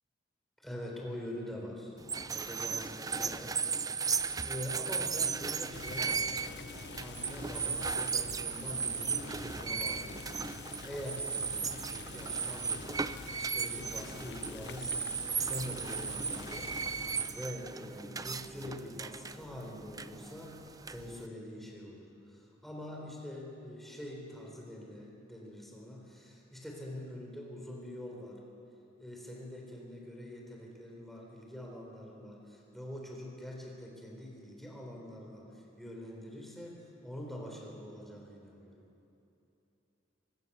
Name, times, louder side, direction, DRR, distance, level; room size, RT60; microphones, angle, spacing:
voice 1, 0.6-2.0 2.3-28.4 29.0-38.8, left 1 dB, ahead, -1 dB, 3.8 m, -45 dB
sound 1, 2.0-21.3, right 6 dB, 20° right, 0.5 m, -36 dB
Boiling, 5.7-17.5, left 5 dB, 60° left, 0.6 m, -47 dB
23.5 x 19.5 x 6.8 m, 2.9 s
head